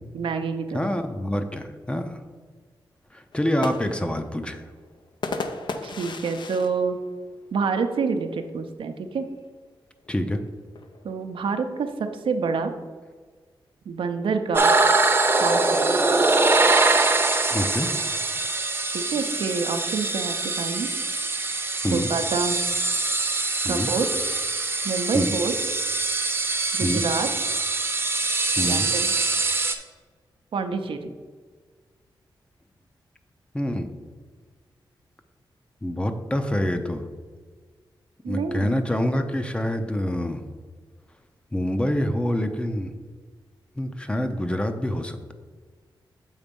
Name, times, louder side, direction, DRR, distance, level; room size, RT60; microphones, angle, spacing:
voice 1, 0.1-0.9 5.8-7.0 7.5-9.3 11.0-11.9 12.2-12.7 13.9-14.8 15.4-16.0 18.9-20.9 21.9-22.6 23.6-24.1 24.8-25.5 26.8-27.3 28.6-29.1 30.5-31.1 38.2-38.7, right 5 dB, 85° right, 6 dB, 0.6 m, -27 dB
voice 2, 0.7-2.2 3.1-4.6 10.1-10.4 17.5-17.9 21.8-22.1 23.6-23.9 25.1-25.3 26.8-27.0 28.6-28.9 33.5-33.9 35.8-37.0 38.3-40.4 41.5-42.9 43.8-45.3, left 1 dB, 10° left, 7 dB, 0.6 m, -26 dB
sound 1, 3.3-8.0 8.4-8.5 8.8-9.2 10.1-11.6, left 3 dB, 65° left, 0.6 m, -36 dB
sound 2, 14.5-29.7, right 3 dB, 25° right, 0.7 m, -23 dB
7.2 x 4.2 x 5.2 m, 1.5 s
wide cardioid pair, 100°, 9 cm